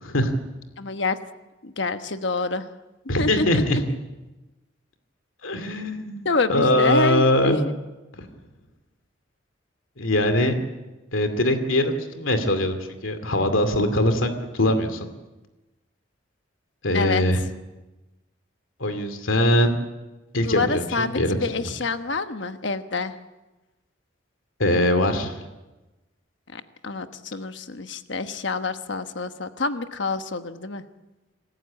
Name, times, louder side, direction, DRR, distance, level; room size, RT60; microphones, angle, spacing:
voice 1, 0.0-0.3 3.1-3.8 5.4-6.2 6.5-7.6 8.2-8.3 10.0-10.6 11.1-15.0 16.8-17.4 18.8-19.7 20.3-21.4 24.6-25.4, left 1 dB, 90° left, 8 dB, 2.5 m, -22 dB
voice 2, 0.8-1.2 1.6-2.7 3.2-3.8 6.2-7.6 16.9-17.2 20.4-23.1 26.5-30.8, left 3 dB, 60° left, 9 dB, 1.2 m, -27 dB
26.5 x 14.5 x 8.5 m, 1.1 s
head